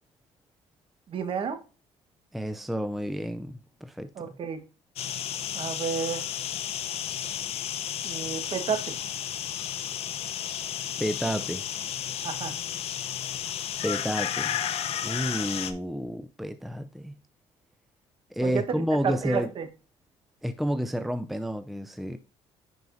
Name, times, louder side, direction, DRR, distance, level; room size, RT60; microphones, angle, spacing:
voice 1, 1.1-1.6 4.1-4.6 5.5-6.3 8.0-9.0 12.2-12.5 18.4-18.8 19.0-19.7, right 6 dB, 50° right, 1.5 m, -31 dB
voice 2, 2.3-4.1 11.0-11.6 13.8-14.6 15.0-17.2 18.3-19.5 20.4-22.2, equal, ahead, 0.5 m, -30 dB
sound 1, 5.0-15.7, left 10 dB, 60° left, 0.8 m, -32 dB
10.5 x 4.7 x 2.6 m
cardioid pair, 110°, 12 cm